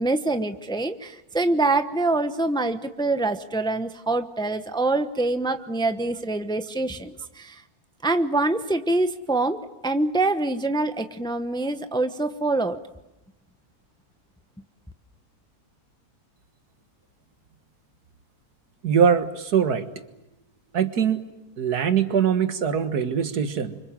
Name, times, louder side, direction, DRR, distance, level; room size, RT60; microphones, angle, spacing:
voice 1, 0.0-7.6 8.0-12.8, right 2 dB, 5° left, 9 dB, 0.8 m, -25 dB
voice 2, 18.8-19.9 20.7-21.3 21.6-23.8, right 7 dB, 90° right, 9 dB, 2.0 m, -22 dB
28.0 x 25.0 x 7.5 m, 0.92 s
omnidirectional pair, 1.6 m